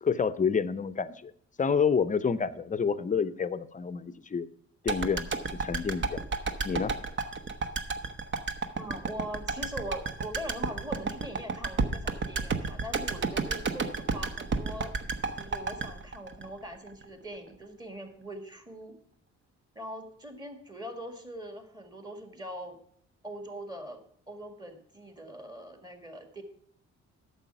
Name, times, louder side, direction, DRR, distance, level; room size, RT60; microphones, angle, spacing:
voice 1, 0.0-1.3 1.6-4.5 4.8-6.2 6.6-6.9, left 6 dB, 25° left, 14 dB, 0.6 m, -28 dB
sound 1, 4.9-17.0 17.3-17.4, right 4 dB, 40° right, 0.9 m, -32 dB
voice 2, 8.8-14.9 15.4-19.0 19.8-22.8 23.2-26.4, equal, 15° right, 6 dB, 1.8 m, -42 dB
9.0 x 6.9 x 5.8 m, 0.62 s
cardioid pair, 90°, 30 cm